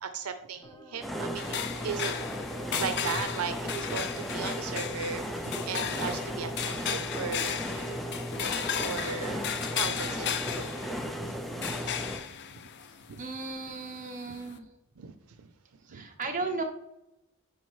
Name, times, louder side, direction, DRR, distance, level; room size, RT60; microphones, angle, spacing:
voice 1, 0.0-1.6 1.8-2.1 2.8-8.0 8.4-10.3 10.5-10.7 11.6-11.7 13.1-13.2 15.0-15.5 15.9-16.1, right 6 dB, 85° right, 8 dB, 0.6 m, -37 dB
sound 1, 0.6-9.3, equal, 20° left, 0.9 m, -50 dB
sound 2, 1.0-12.2, equal, ahead, 0.5 m, -36 dB
sound 3, 1.4-14.6, left 8 dB, 50° left, 0.5 m, -36 dB
voice 2, 13.2-14.7 15.8-16.6, right 3 dB, 35° right, 3 dB, 1.1 m, -35 dB
9.5 x 4.6 x 3.2 m, 0.89 s
head